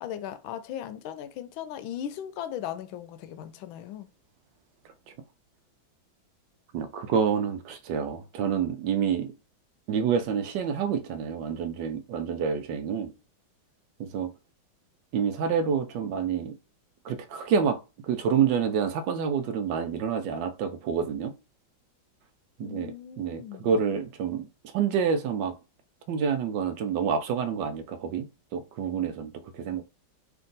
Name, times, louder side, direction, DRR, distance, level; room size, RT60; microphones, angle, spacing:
voice 1, 0.0-4.1 22.6-23.7, left 10 dB, 90° left, 1.4 m, -38 dB
voice 2, 6.7-9.3 9.9-13.1 14.0-14.3 15.1-16.5 17.0-17.8 18.0-21.3 22.6-24.5 24.7-25.5 26.1-28.3 28.5-29.8, right 7 dB, 75° right, 1.2 m, -28 dB
3.4 x 3.0 x 3.9 m
omnidirectional pair, 2.1 m